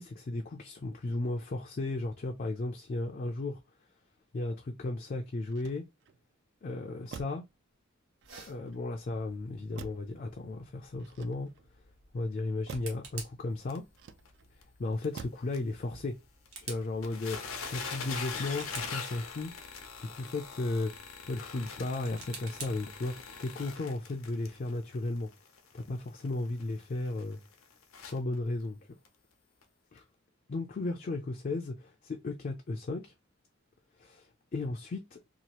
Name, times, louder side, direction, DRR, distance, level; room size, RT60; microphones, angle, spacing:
voice 1, 0.0-3.6 4.3-5.8 6.6-7.4 8.5-11.5 12.1-13.8 14.8-16.2 16.6-19.5 20.0-20.9 21.2-25.3 25.7-27.4 28.0-28.8 29.9-30.0 30.5-33.1 34.0-35.2, left 2 dB, 40° left, 0.4 m, -35 dB
Motor vehicle (road), 5.4-6.2 7.1-7.5 8.2-8.9 9.8-10.2 11.0-11.8 12.7-13.0 13.9-14.5 15.1-15.5 15.9-16.3, right 5 dB, 55° right, 0.3 m, -48 dB
sound 1, 8.2-23.4, right 4 dB, 80° right, 1.0 m, -52 dB
sound 2, 13.7-13.8 14.3-14.4 14.6-14.7 15.0-15.1 15.5-15.6 16.5-16.6 16.8-28.4 29.0-29.1 29.6-29.7, left 5 dB, 90° left, 0.6 m, -42 dB
2.8 x 2.3 x 2.9 m
head